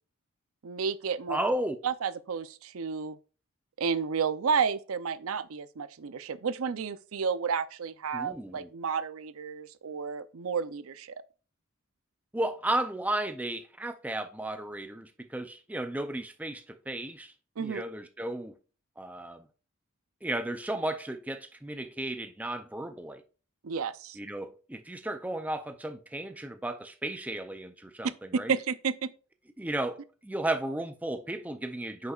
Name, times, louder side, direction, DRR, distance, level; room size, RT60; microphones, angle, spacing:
voice 1, 0.6-1.4 1.8-3.2 3.8-11.1 17.6-17.8 23.6-24.2 28.5-29.1, right 6 dB, 70° right, 0.5 m, -31 dB
voice 2, 1.3-1.8 8.1-8.7 12.3-18.6 19.0-19.4 20.2-23.2 24.2-28.5 29.6-32.1, right 1 dB, 5° right, 0.4 m, -34 dB
9.1 x 6.7 x 2.4 m
head